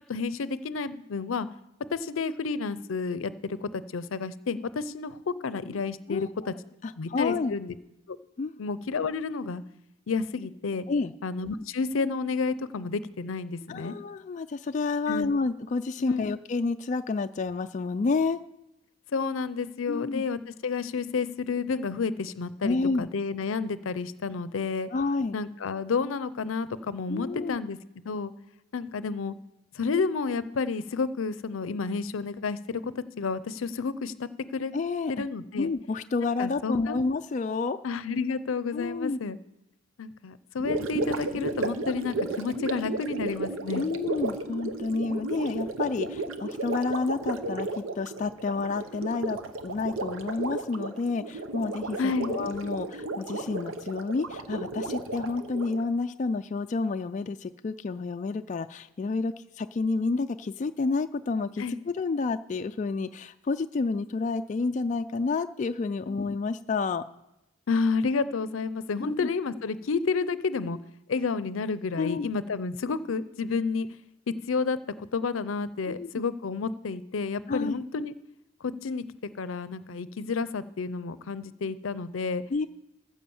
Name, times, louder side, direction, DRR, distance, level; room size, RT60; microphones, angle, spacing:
voice 1, 0.1-1.5 1.9-6.5 7.0-7.8 8.1-8.2 8.6-9.6 10.1-10.9 11.2-14.0 15.1-15.3 16.0-16.3 19.1-24.9 25.3-27.8 28.0-28.3 28.7-29.4 29.7-32.9 33.2-34.7 35.1-35.7 36.4-37.0 37.8-39.4 40.0-43.8 52.0-52.3 61.6-61.8 66.1-66.3 67.7-70.8 71.1-73.9 74.3-78.1 78.6-79.0 79.3-82.4, left 4 dB, 85° left, 16 dB, 0.5 m, -30 dB
voice 2, 6.1-6.5 6.8-7.6 8.4-8.6 10.9-11.1 13.7-18.4 19.9-20.2 22.6-23.1 24.9-25.4 27.1-27.6 34.7-35.3 35.6-37.8 38.7-39.2 43.7-49.4 49.6-67.0 69.0-69.3 72.0-72.3 75.9-76.2 77.5-77.8 82.5-82.7, left 4 dB, 35° left, 8 dB, 0.3 m, -30 dB
Gurgling, 40.6-55.9, right 2 dB, 90° right, 0.8 m, -33 dB
14.5 x 5.0 x 7.0 m, 0.89 s
head